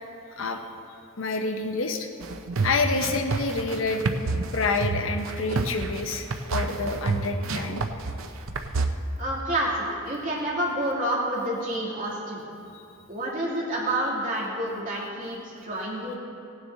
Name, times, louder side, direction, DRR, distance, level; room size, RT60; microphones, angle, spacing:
voice 1, 1.2-2.1 2.6-4.1 4.5-6.2 6.5-7.8 12.7-12.8, left 3 dB, 65° left, 5 dB, 0.9 m, -27 dB
sound 1, 2.2-8.9, right 3 dB, 75° right, 0.7 m, -28 dB
voice 2, 9.2-12.4 13.1-16.2, right 1 dB, 40° right, -5 dB, 2.9 m, -29 dB
17.0 x 9.6 x 3.9 m, 2.7 s
head